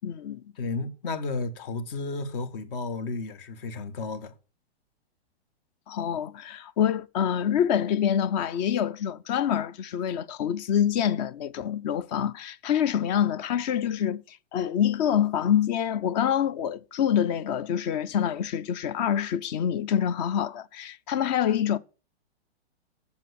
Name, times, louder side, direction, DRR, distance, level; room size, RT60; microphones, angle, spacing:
voice 1, 0.0-0.4 5.9-21.8, left 9 dB, 40° left, 0.6 m, -26 dB
voice 2, 0.6-4.3, left 3 dB, 60° left, 1.7 m, -33 dB
7.4 x 7.2 x 7.8 m
hypercardioid pair, 120°, 31 cm